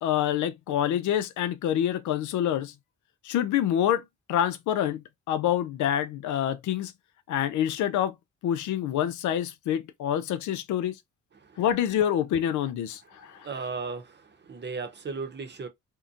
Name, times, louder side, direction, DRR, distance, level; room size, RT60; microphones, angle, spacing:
voice 1, 0.0-2.7 3.2-4.0 4.3-5.0 5.3-6.9 7.3-8.1 8.4-11.0 11.6-13.5, left 10 dB, 75° left, 0.5 m, -26 dB
voice 2, 13.4-14.2 14.5-15.7, right 4 dB, 35° right, 0.8 m, -35 dB
2.7 x 2.1 x 2.4 m
cardioid pair, 90°, 30 cm